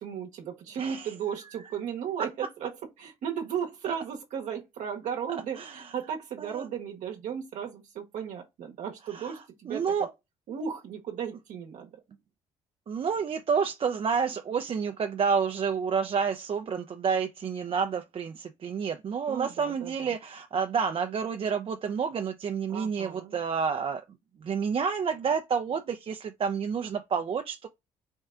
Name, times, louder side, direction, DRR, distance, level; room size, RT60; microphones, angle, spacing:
voice 1, 0.0-2.7 3.0-10.1 10.5-12.0 19.3-20.1 22.7-23.4, right 8 dB, 70° right, 1.0 m, -35 dB
voice 2, 5.6-5.9 6.4-6.7 9.1-9.3 9.7-10.1 12.9-24.0 24.4-27.7, right 6 dB, 45° right, 0.5 m, -29 dB
4.4 x 2.2 x 3.6 m
supercardioid pair, 65°, 13 cm